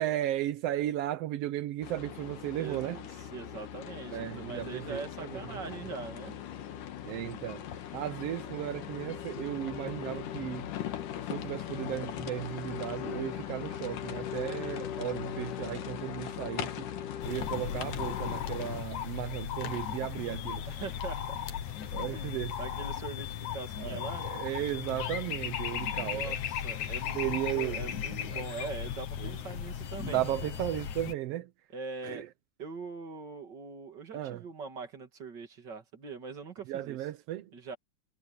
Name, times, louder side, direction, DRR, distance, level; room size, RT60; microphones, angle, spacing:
voice 1, 0.0-3.0 4.1-5.0 7.0-7.6 7.9-10.6 11.3-16.9 17.2-20.6 21.9-22.5 23.8-26.3 27.1-27.8 29.2-29.3 30.0-31.5 32.1-32.2 34.1-34.4 36.7-37.4, right 13 dB, 75° right, 1.4 m, -35 dB
sound 1, 1.8-18.8, left 10 dB, 90° left, 3.1 m, -39 dB
voice 2, 2.5-6.4 20.7-21.4 22.1-24.3 26.0-30.2 31.7-32.3 32.6-37.1 37.5-37.8, right 4 dB, 35° right, 3.0 m, -42 dB
sound 2, 17.2-31.1, left 9 dB, 70° left, 2.8 m, -36 dB
omnidirectional pair, 3.6 m